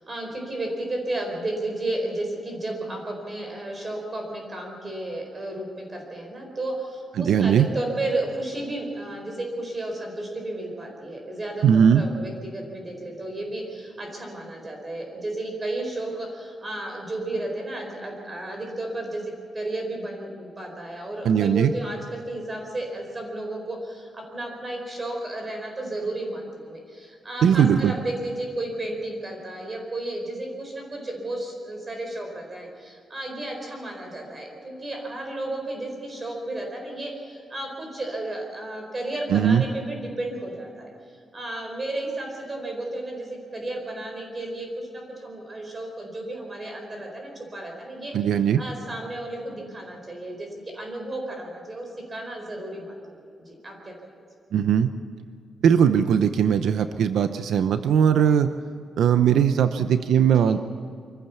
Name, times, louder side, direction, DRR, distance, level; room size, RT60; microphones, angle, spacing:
voice 1, 0.0-48.2 48.6-54.2 60.4-60.6, right 1 dB, 20° right, 2 dB, 4.4 m, -33 dB
voice 2, 7.2-7.7 11.6-12.0 21.2-21.7 27.4-27.9 39.3-39.6 48.1-48.6 54.5-54.9 55.6-58.5 59.0-60.6, right 8 dB, 85° right, 10 dB, 0.7 m, -19 dB
25.0 x 15.0 x 7.1 m, 2.4 s
wide cardioid pair, 175°, 0 cm